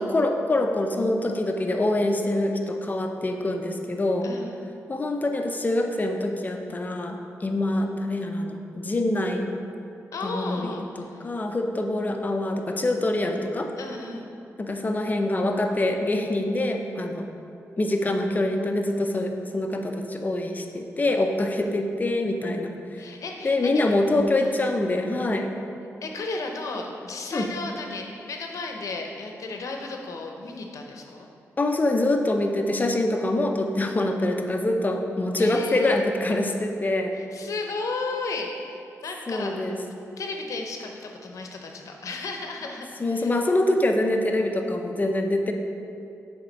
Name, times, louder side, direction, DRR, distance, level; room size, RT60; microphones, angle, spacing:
voice 1, 0.0-4.3 4.9-9.5 10.2-10.7 11.0-13.7 14.6-17.3 17.8-23.0 23.4-25.6 27.3-27.5 31.6-37.1 39.3-39.8 43.0-45.5, left 1 dB, 30° left, 4 dB, 0.6 m, -25 dB
voice 2, 4.2-4.7 10.1-11.3 13.8-14.3 23.0-24.0 24.4-24.6 26.0-31.3 35.4-36.0 37.3-39.8 40.2-43.4, left 3 dB, 75° left, 2 dB, 0.8 m, -34 dB
7.2 x 3.6 x 5.2 m, 2.6 s
cardioid pair, 85°, 6 cm